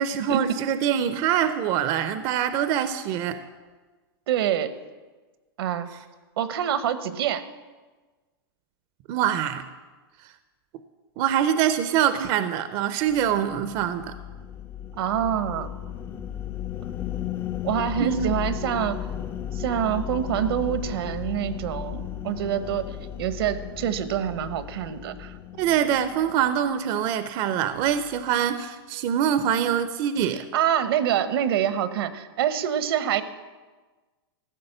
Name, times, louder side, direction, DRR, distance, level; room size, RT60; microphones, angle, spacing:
voice 1, 0.0-3.4 9.1-9.6 11.2-14.2 18.0-18.3 25.6-30.4, right 9 dB, 35° right, 11 dB, 0.5 m, -24 dB
voice 2, 4.3-4.7 5.6-5.9 6.4-7.4 14.9-15.7 17.6-19.0 19.5-25.3 30.5-33.2, right 10 dB, 70° right, 13 dB, 0.9 m, -26 dB
sound 1, 13.1-26.6, left 10 dB, 15° left, 0.4 m, -35 dB
14.0 x 6.5 x 7.7 m, 1.3 s
supercardioid pair, 145°, 13 cm